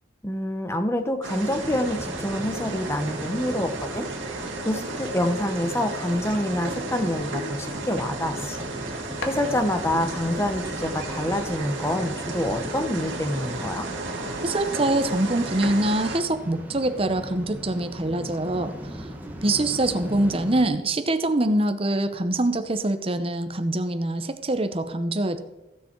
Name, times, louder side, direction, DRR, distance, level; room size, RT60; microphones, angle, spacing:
voice 1, 0.2-13.9, left 1 dB, 15° left, 7 dB, 0.9 m, -27 dB
sound 1, 1.2-16.2, right 2 dB, 80° right, 2.4 m, -33 dB
Waves surf, 1.5-20.7, equal, 10° right, 1.3 m, -38 dB
sound 2, 8.8-8.9 9.2-11.8, left 2 dB, 65° left, 1.7 m, -42 dB
voice 2, 14.4-19.0 19.4-25.4, right 1 dB, 30° right, 9 dB, 0.8 m, -24 dB
15.5 x 7.0 x 4.5 m, 1.1 s
head